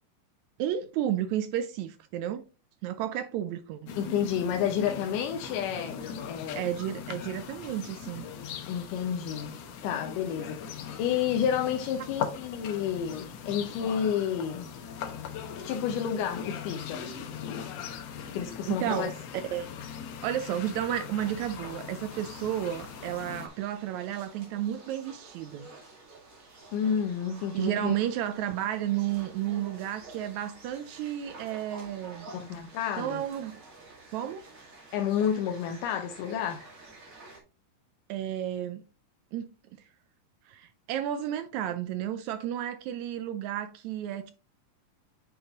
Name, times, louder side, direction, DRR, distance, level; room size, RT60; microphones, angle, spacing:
voice 1, 0.6-2.4 2.8-3.9 6.5-8.3 18.7-19.1 19.5-19.7 20.2-25.7 27.5-32.3 33.0-33.6 34.1-34.4 38.1-38.8 39.3-39.5 40.5-44.3, right 11 dB, 80° right, 1.7 m, -32 dB
sound 1, 3.9-23.5, left 7 dB, 65° left, 1.8 m, -40 dB
voice 2, 4.0-6.7 8.7-9.6 9.8-14.7 15.6-17.0 18.3-19.1 26.7-27.9 32.3-33.2 34.9-36.7, left 8 dB, 90° left, 2.3 m, -30 dB
sound 2, 21.2-37.4, right 3 dB, 30° right, 1.7 m, -50 dB
8.8 x 5.5 x 2.9 m
omnidirectional pair, 3.7 m